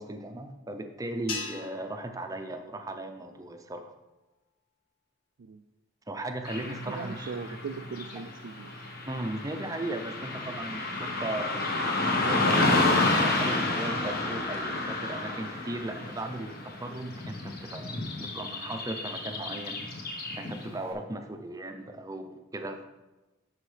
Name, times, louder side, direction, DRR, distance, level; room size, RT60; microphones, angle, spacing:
voice 1, 0.0-3.9 6.1-7.3 9.1-11.6 12.2-19.8 20.4-22.9, right 1 dB, 15° right, 5 dB, 0.6 m, -37 dB
sound 1, 1.3-3.7, left 4 dB, 85° left, 1.5 m, -42 dB
Car passing by / Traffic noise roadway noise, 6.4-20.7, left 2 dB, 50° left, 1.2 m, -30 dB
voice 2, 6.6-8.8, right 5 dB, 65° right, 6 dB, 0.4 m, -40 dB
11.5 x 4.8 x 3.3 m, 1.1 s
head